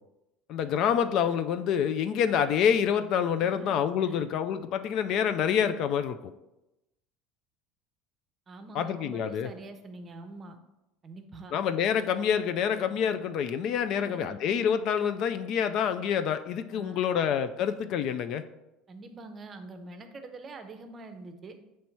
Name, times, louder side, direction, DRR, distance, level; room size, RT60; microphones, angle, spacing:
voice 1, 0.5-6.3 8.7-9.5 11.5-18.4, left 8 dB, 55° left, 10 dB, 0.3 m, -27 dB
voice 2, 3.4-3.7 4.0-4.3 8.5-10.6 11.0-11.5 11.9-12.1 13.9-14.4 16.7-17.2 18.9-21.6, right 3 dB, 25° right, 7 dB, 0.6 m, -45 dB
6.8 x 3.2 x 4.5 m, 0.95 s
supercardioid pair, 130°, 0 cm